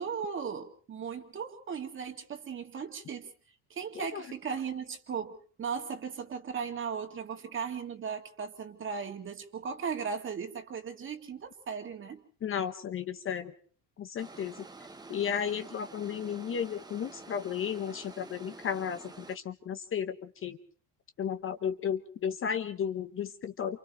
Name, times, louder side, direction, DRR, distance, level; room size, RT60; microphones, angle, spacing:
voice 1, 0.0-3.3 3.7-12.2, right 6 dB, 30° right, 5 dB, 2.2 m, -37 dB
voice 2, 12.4-13.5 14.0-14.6 15.1-20.6 21.2-23.8, left 8 dB, 35° left, 9 dB, 1.0 m, -34 dB
sound 1, 14.2-19.4, right 3 dB, 10° right, 1.0 m, -49 dB
29.5 x 28.5 x 3.2 m, 0.43 s
cardioid pair, 170°, 38 cm